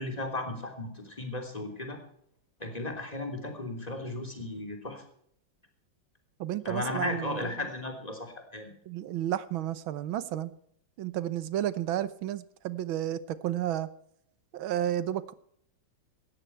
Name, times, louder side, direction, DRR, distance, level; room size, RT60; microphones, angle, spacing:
voice 1, 0.0-2.0 2.6-5.0 6.6-8.7, left 1 dB, 20° left, 4 dB, 3.3 m, -35 dB
voice 2, 6.4-7.5 8.9-10.5 11.0-13.9 14.5-15.3, right 12 dB, 85° right, 16 dB, 1.7 m, -32 dB
18.0 x 13.0 x 4.5 m, 0.69 s
omnidirectional pair, 2.2 m